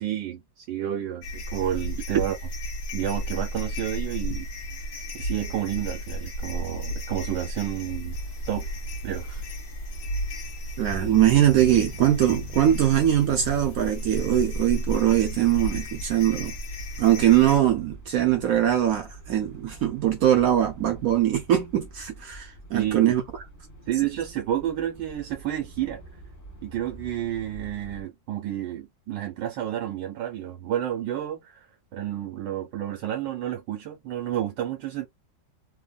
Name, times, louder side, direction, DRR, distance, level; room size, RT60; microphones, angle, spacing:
voice 1, 0.0-2.4 2.9-4.5 5.1-8.2 8.5-8.7 9.0-9.4 22.7-23.1 23.9-26.0 26.6-31.7 31.9-35.1, right 11 dB, 90° right, 1.4 m, -30 dB
sound 1, 1.2-17.6, equal, 65° left, 1.3 m, -34 dB
sound 2, 8.1-28.0, right 2 dB, 15° left, 0.8 m, -43 dB
voice 2, 10.8-16.5 17.0-23.2, right 11 dB, 70° right, 0.9 m, -22 dB
3.3 x 2.2 x 2.2 m
omnidirectional pair, 1.9 m